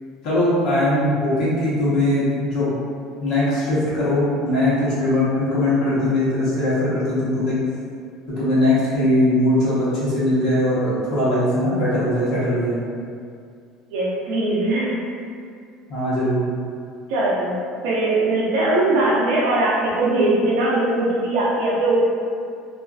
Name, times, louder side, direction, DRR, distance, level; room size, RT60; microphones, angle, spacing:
voice 1, 0.2-2.7 3.2-7.6 8.4-12.8 15.9-16.5, left 1 dB, 45° left, -10 dB, 0.9 m, -20 dB
voice 2, 13.9-15.0 17.1-17.5 17.8-22.1, right 2 dB, 65° right, -5 dB, 0.5 m, -20 dB
2.4 x 2.3 x 2.3 m, 2.3 s
cardioid pair, 180°, 0 cm